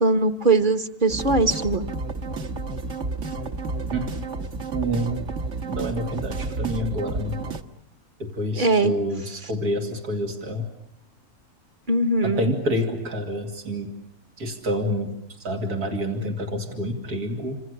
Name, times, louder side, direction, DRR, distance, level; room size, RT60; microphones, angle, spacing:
voice 1, 0.0-1.8 8.5-8.9 11.9-12.5, right 3 dB, 35° right, 8 dB, 1.2 m, -21 dB
sound 1, 1.1-7.6, right 3 dB, 55° right, 1.6 m, -31 dB
voice 2, 4.7-5.3 5.6-7.4 8.2-10.7 12.2-13.9 14.4-17.6, equal, 90° right, 3 dB, 3.1 m, -28 dB
28.0 x 26.0 x 6.7 m, 0.76 s
omnidirectional pair, 1.6 m